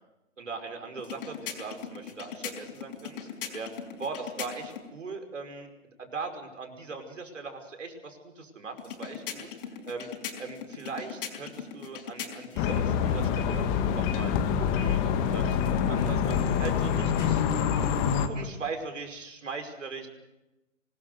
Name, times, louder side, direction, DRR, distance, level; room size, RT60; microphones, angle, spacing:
voice 1, 0.4-3.3 3.5-3.7 4.0-5.7 6.0-9.5 9.9-10.1 10.4-14.3 14.6-17.4 18.3-20.1, right 4 dB, 70° right, 4 dB, 5.5 m, -39 dB
sound 1, 1.0-4.9 8.8-12.7, left 8 dB, 45° left, 5.2 m, -40 dB
sound 2, 12.6-18.3, left 7 dB, 25° left, 1.8 m, -26 dB
24.5 x 21.0 x 6.6 m, 0.97 s
figure-of-eight pair, 130°, 39 cm